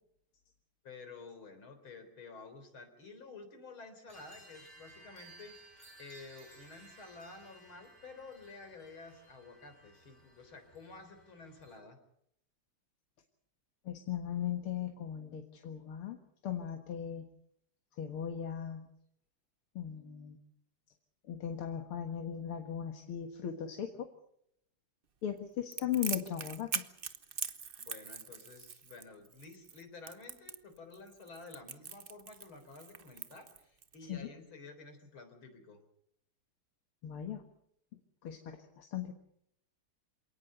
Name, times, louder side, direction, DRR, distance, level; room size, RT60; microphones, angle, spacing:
voice 1, 0.8-5.7 6.0-12.0 27.8-35.8, left 3 dB, 70° left, 8 dB, 4.8 m, -51 dB
sound 1, 4.1-11.8, right 2 dB, 20° left, 6.4 m, -58 dB
voice 2, 13.9-16.2 16.4-17.3 18.0-18.9 19.8-20.4 21.3-24.1 25.2-26.8 34.1-34.3 37.0-37.4 38.2-39.1, left 9 dB, 85° left, 4 dB, 2.6 m, -38 dB
Crackle, 25.7-34.0, right 6 dB, 40° right, 0.8 m, -41 dB
27.5 x 18.5 x 6.8 m, 0.75 s
omnidirectional pair, 2.3 m